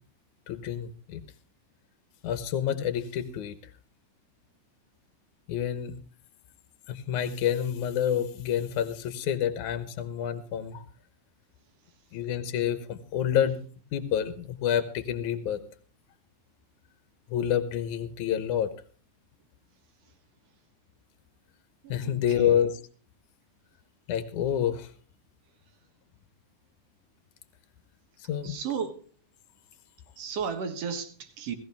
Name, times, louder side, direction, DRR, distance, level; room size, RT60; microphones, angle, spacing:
voice 1, 0.5-1.2 2.2-3.6 5.5-6.0 6.9-10.8 12.1-13.6 13.9-15.6 17.3-18.7 21.9-22.7 24.1-24.9 28.3-28.6, left 9 dB, 85° left, 2.5 m, -28 dB
voice 2, 21.8-22.6 28.4-29.0 30.2-31.6, right 6 dB, 60° right, 2.4 m, -34 dB
17.5 x 14.5 x 3.5 m
omnidirectional pair, 3.4 m